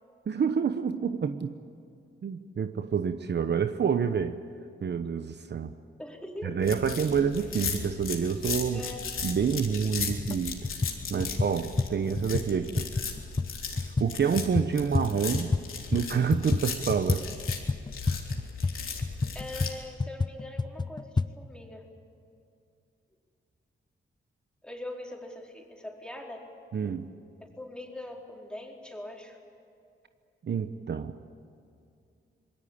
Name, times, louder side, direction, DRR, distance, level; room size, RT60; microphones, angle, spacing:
voice 1, 0.3-1.5 2.2-4.4 4.8-5.7 6.4-8.8 9.2-10.6 11.1-12.9 14.0-15.5 15.9-17.3 26.7-27.1 30.4-31.3, right 6 dB, 55° right, 9 dB, 1.0 m, -28 dB
voice 2, 6.0-6.6 8.7-9.0 19.3-21.9 24.6-26.4 27.6-29.4, left 1 dB, 5° left, 0 dB, 4.4 m, -42 dB
sound 1, 6.6-19.7, left 5 dB, 80° left, 3.2 m, -37 dB
sound 2, 9.5-9.6 10.0-10.4 10.6-15.7 15.9-21.3, left 3 dB, 20° left, 0.6 m, -30 dB
26.0 x 21.0 x 8.8 m, 2.5 s
cardioid pair, 85°, 21 cm